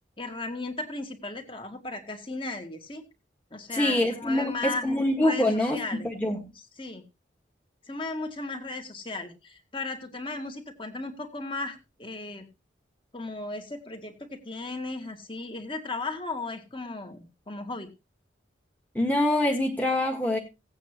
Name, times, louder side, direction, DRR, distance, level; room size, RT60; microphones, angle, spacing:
voice 1, 0.2-3.0 3.5-6.1 6.5-7.0 7.9-12.5 13.1-17.9, left 2 dB, 25° left, 5 dB, 2.0 m, -36 dB
voice 2, 3.7-5.8 6.1-6.4 19.0-20.4, left 1 dB, 10° left, 0 dB, 1.6 m, -25 dB
17.0 x 9.0 x 3.0 m, 0.27 s
head